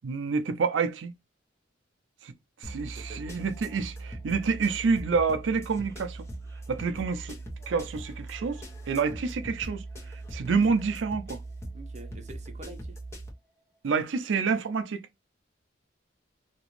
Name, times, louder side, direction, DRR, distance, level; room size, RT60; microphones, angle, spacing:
voice 1, 0.0-1.1 2.2-2.3 2.6-6.3 6.7-7.4 7.7-11.4 13.8-15.1, right 5 dB, 75° right, 0.4 m, -28 dB
sound 1, 2.6-13.3, right 2 dB, 15° left, 0.9 m, -40 dB
voice 2, 3.0-3.4 11.7-13.0, right 2 dB, 35° right, 0.7 m, -46 dB
2.9 x 2.5 x 3.0 m
head